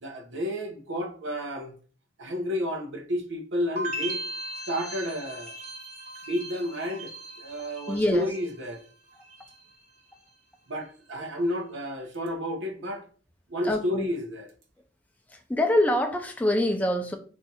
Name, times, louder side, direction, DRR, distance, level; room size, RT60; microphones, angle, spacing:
voice 1, 0.0-1.7 2.2-4.2 4.7-5.5 6.3-7.1 7.4-8.9 10.7-13.0 13.5-14.5, equal, 85° right, 0.7 m, -31 dB
sound 1, 3.8-8.8 9.1-9.7, right 1 dB, 35° right, 0.6 m, -38 dB
voice 2, 7.9-8.3 13.6-14.1 15.3-17.2, left 1 dB, 10° left, 0.4 m, -25 dB
2.6 x 2.3 x 4.1 m
head